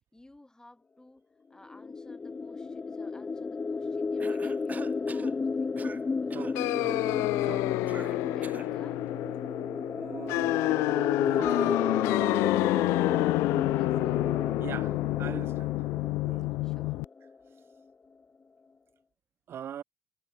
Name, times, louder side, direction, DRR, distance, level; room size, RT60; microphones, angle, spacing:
voice 1, 0.1-5.9 6.2-6.5 8.0-9.1 13.7-14.3 16.6-17.1, left 2 dB, 15° left, 8.0 m, -55 dB
sound 1, 1.6-17.3, left 4 dB, 30° left, 1.2 m, -33 dB
Cough, 4.2-5.3 5.8-6.0 6.3-6.6 7.9-8.7, right 4 dB, 35° right, 1.4 m, -44 dB
voice 2, 6.3-7.7 9.9-10.7 11.2-12.5 14.6-15.7 16.2-16.6 19.5-19.8, right 9 dB, 55° right, 2.3 m, -43 dB
sound 2, 6.6-17.1, left 22 dB, 70° left, 0.3 m, -28 dB
figure-of-eight pair, 45°, 5 cm